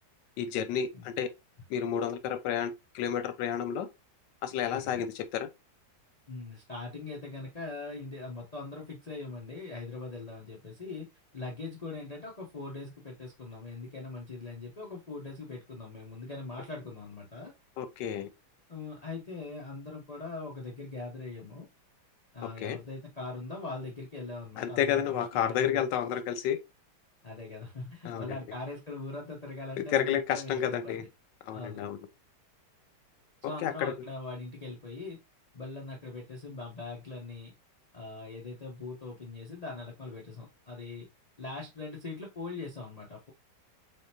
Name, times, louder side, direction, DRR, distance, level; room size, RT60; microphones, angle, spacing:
voice 1, 0.4-1.3 1.7-3.9 4.4-5.5 17.8-18.3 22.4-22.8 24.6-26.6 28.0-28.4 29.8-31.0 31.5-32.0 33.4-33.9, left 9 dB, 90° left, 1.3 m, -31 dB
voice 2, 4.7-5.0 6.3-11.1 11.3-17.5 18.7-21.7 22.3-25.8 27.2-31.1 31.5-31.8 33.4-35.2 35.5-37.5 37.9-41.1 41.4-43.3, left 3 dB, 35° left, 0.7 m, -41 dB
3.7 x 3.5 x 2.7 m
omnidirectional pair, 1.9 m